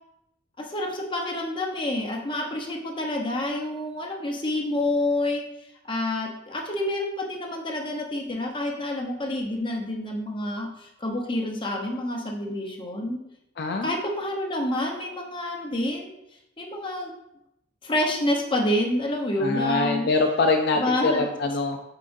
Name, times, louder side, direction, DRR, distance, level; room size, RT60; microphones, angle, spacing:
voice 1, 0.6-5.4 5.8-13.2 13.8-16.1 16.6-17.1 17.8-20.1 20.7-21.3, left 1 dB, 25° left, 1 dB, 0.8 m, -28 dB
voice 2, 13.6-13.9 19.4-21.8, left 3 dB, 55° left, 4 dB, 0.4 m, -24 dB
7.4 x 4.8 x 2.6 m, 0.84 s
head